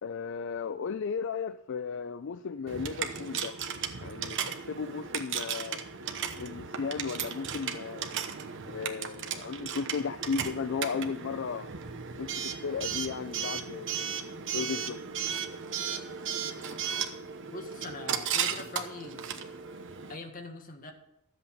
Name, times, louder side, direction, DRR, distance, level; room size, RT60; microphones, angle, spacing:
voice 1, 0.0-3.6 4.0-5.8 6.4-8.1 8.7-11.7 12.2-13.9 14.5-15.0, left 5 dB, 55° left, 13 dB, 0.4 m, -35 dB
Coin (dropping) / Alarm, 2.7-20.2, right 7 dB, 60° right, 1.0 m, -35 dB
voice 2, 17.4-19.2 20.1-20.9, left 3 dB, 40° left, 4 dB, 1.6 m, -42 dB
13.0 x 8.1 x 5.8 m, 0.80 s
head